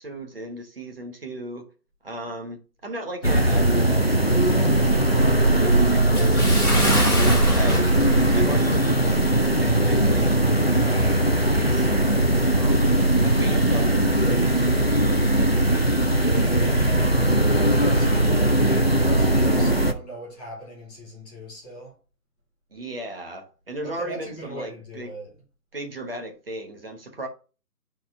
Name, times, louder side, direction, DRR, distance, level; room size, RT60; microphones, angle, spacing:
voice 1, 0.0-1.7 2.0-8.0 8.3-17.5 22.7-25.1 25.7-27.3, right 1 dB, 35° right, 1.1 m, -37 dB
sound 1, 3.2-19.9, right 1 dB, 40° left, 0.4 m, -19 dB
Bathtub (filling or washing) / Splash splatter, 6.1-9.0 9.3-9.5 10.1-10.2, left 1 dB, 5° right, 1.6 m, -28 dB
voice 2, 17.5-21.9 23.8-25.4, right 1 dB, 15° left, 4.4 m, -38 dB
8.5 x 4.3 x 3.6 m
hypercardioid pair, 175°, 48 cm